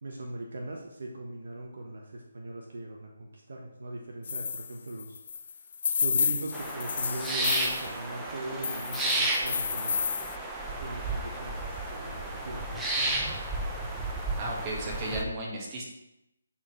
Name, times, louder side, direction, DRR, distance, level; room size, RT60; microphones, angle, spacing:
voice 1, 0.0-5.2 6.0-10.1 10.8-13.4, right 2 dB, 60° right, 1 dB, 1.2 m, -40 dB
sound 1, 4.2-7.9 8.6-10.4, left 6 dB, 45° left, 0.4 m, -31 dB
sound 2, 6.5-15.2, right 2 dB, 10° right, 0.8 m, -32 dB
voice 2, 14.4-15.8, right 1 dB, 25° right, -2 dB, 1.8 m, -34 dB
8.7 x 4.4 x 4.5 m, 0.87 s
figure-of-eight pair, 145°, 0 cm